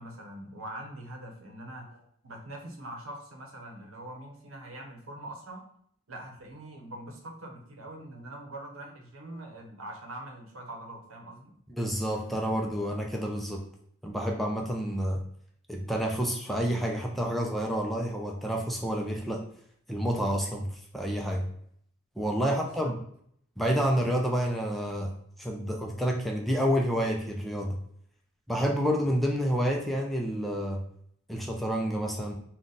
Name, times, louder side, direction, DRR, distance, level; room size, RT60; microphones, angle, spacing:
voice 1, 0.0-5.6 6.1-11.5 22.6-22.9, right 1 dB, 85° right, 2 dB, 0.9 m, -43 dB
voice 2, 11.8-13.6 14.0-15.2 15.7-19.4 19.9-20.7 20.9-21.5 22.2-23.0 23.6-25.1 25.4-27.8 28.5-30.8 31.3-32.3, equal, ahead, 0 dB, 0.5 m, -29 dB
3.9 x 2.4 x 3.8 m, 0.66 s
head